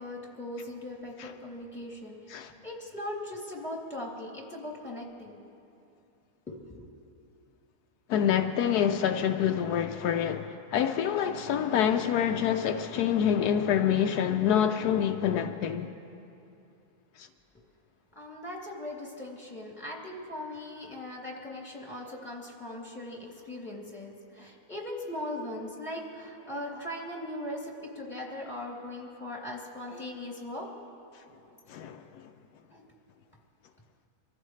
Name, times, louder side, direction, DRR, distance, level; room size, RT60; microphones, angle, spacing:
voice 1, 0.0-2.1 2.6-5.4 6.5-6.8 18.2-30.7 32.7-32.8, left 1 dB, 5° left, 2.6 m, -39 dB
voice 2, 8.1-15.9 17.2-17.3 31.7-32.2, left 9 dB, 80° left, 1.1 m, -27 dB
25.0 x 14.5 x 3.2 m
omnidirectional pair, 1.7 m